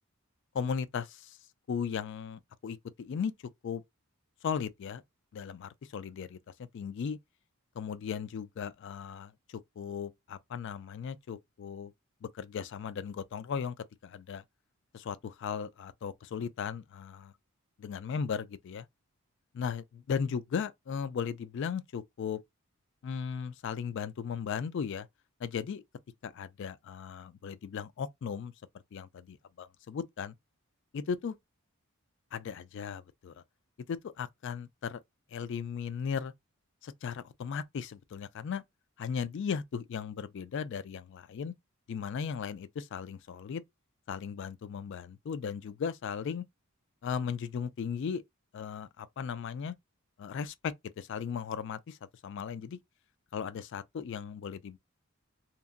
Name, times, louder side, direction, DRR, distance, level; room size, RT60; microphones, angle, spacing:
voice 1, 0.5-1.4 1.7-3.3 3.6-3.8 4.4-5.0 5.3-7.2 7.8-11.9 12.2-13.7 14.0-14.4 14.9-17.3 17.8-18.9 19.5-22.4 23.0-25.1 25.4-25.8 26.2-28.5 28.9-30.3 30.9-31.3 32.3-33.4 33.9-35.0 35.3-36.3 36.8-38.6 39.0-41.5 41.9-43.6 44.1-46.4 47.0-48.2 48.5-49.7 50.2-52.0 52.2-52.8 53.3-54.8, left 6 dB, 55° left, 0.3 m, -37 dB
2.8 x 2.5 x 2.4 m
head